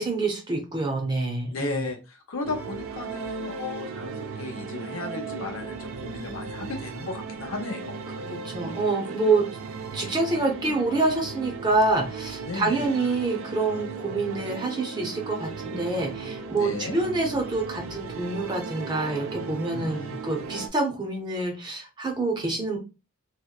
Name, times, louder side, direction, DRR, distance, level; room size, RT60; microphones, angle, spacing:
voice 1, 0.0-1.9 8.2-9.5 9.9-22.8, right 3 dB, 20° right, 1 dB, 0.5 m, -27 dB
voice 2, 1.5-8.0 12.4-13.0 16.5-17.0 19.7-20.2, left 3 dB, 75° left, 4 dB, 0.6 m, -35 dB
sound 1, 2.4-20.7, right 5 dB, 80° right, 0.3 m, -36 dB
2.8 x 2.1 x 2.2 m, 0.29 s
head